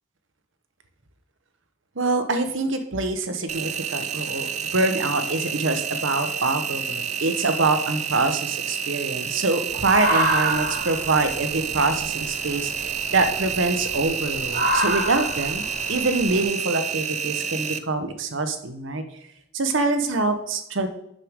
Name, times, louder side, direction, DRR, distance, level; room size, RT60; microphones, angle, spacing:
voice 1, 2.0-19.0 19.5-20.9, right 3 dB, 80° right, 8 dB, 1.0 m, -25 dB
Engine, 3.5-17.8, right 7 dB, 35° right, 0.5 m, -29 dB
sound 1, 9.7-16.4, right 1 dB, 55° right, 1.9 m, -28 dB
11.0 x 6.6 x 3.6 m, 0.79 s
head